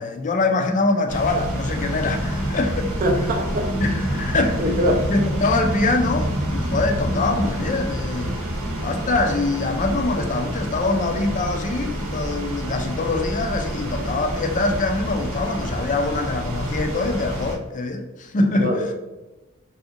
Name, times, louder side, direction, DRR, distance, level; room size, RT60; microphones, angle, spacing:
voice 1, 0.0-2.9 3.8-4.6 5.1-8.3 8.8-18.9, left 3 dB, 35° left, 0.4 m, -24 dB
sound 1, 1.1-17.5, right 1 dB, 70° right, 0.8 m, -27 dB
voice 2, 3.0-3.7 4.6-5.1 18.6-18.9, equal, 40° right, 0.4 m, -22 dB
3.5 x 2.8 x 2.4 m
head